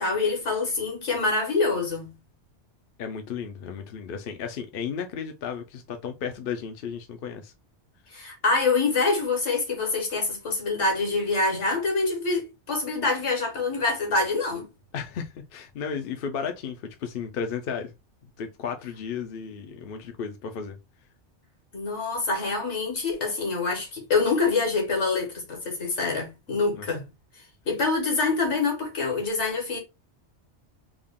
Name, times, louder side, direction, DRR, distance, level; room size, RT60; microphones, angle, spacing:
voice 1, 0.0-2.1 8.1-14.7 21.7-27.0 27.7-29.8, left 3 dB, 80° left, 1.7 m, -25 dB
voice 2, 3.0-7.5 14.9-17.9 18.4-20.8 26.7-26.8, left 6 dB, 60° left, 0.7 m, -34 dB
3.6 x 2.3 x 3.5 m
omnidirectional pair, 1.2 m